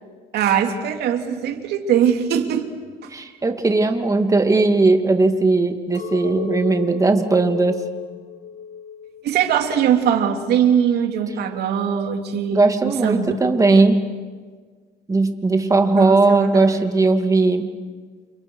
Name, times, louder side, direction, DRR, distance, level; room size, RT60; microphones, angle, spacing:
voice 1, 0.3-2.7 9.2-13.3 13.6-13.8 15.9-16.8, right 8 dB, 75° right, 4 dB, 3.0 m, -21 dB
voice 2, 3.1-7.8 12.5-14.0 15.1-17.7, right 3 dB, 20° right, 6 dB, 2.4 m, -18 dB
Chink clink, 5.9-10.2 10.7-11.3, left 8 dB, 50° left, 4.8 m, -34 dB
30.0 x 28.5 x 6.4 m, 1.5 s
cardioid pair, 110°, 17 cm